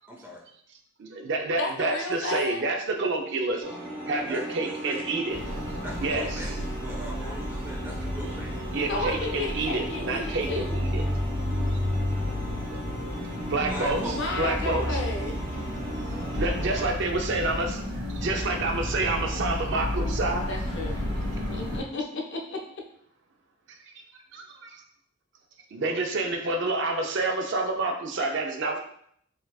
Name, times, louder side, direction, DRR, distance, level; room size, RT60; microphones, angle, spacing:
voice 1, 0.1-0.4 4.3-5.1 5.8-8.6 13.6-14.2, right 1 dB, 10° right, -2 dB, 0.6 m, -40 dB
voice 2, 1.0-3.7 4.1-5.4 6.0-6.5 8.7-11.0 11.7-11.8 13.5-15.0 16.1-20.5 24.3-24.8 25.7-28.8, right 2 dB, 55° right, 3 dB, 0.4 m, -28 dB
voice 3, 1.6-2.7 8.9-10.8 14.0-15.6 20.5-21.0 21.5-22.8, left 2 dB, 55° left, 1 dB, 0.5 m, -33 dB
sound 1, 3.6-16.9, right 1 dB, 25° right, 1.0 m, -38 dB
sound 2, 5.3-21.8, left 1 dB, 75° right, 1.5 m, -32 dB
4.1 x 2.7 x 2.3 m, 0.66 s
head